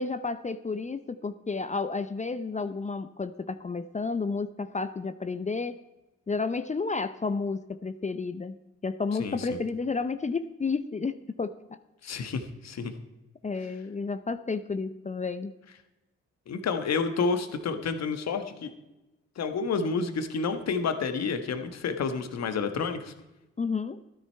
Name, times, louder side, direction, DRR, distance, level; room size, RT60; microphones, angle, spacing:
voice 1, 0.0-5.8 6.3-8.6 8.8-11.5 13.4-15.5 23.6-24.0, left 4 dB, 25° left, 12 dB, 0.6 m, -31 dB
voice 2, 9.2-9.6 12.0-12.9 16.5-18.7 19.4-23.1, left 5 dB, 55° left, 8 dB, 1.4 m, -30 dB
12.5 x 10.0 x 4.5 m, 1.0 s
hypercardioid pair, 45°, 31 cm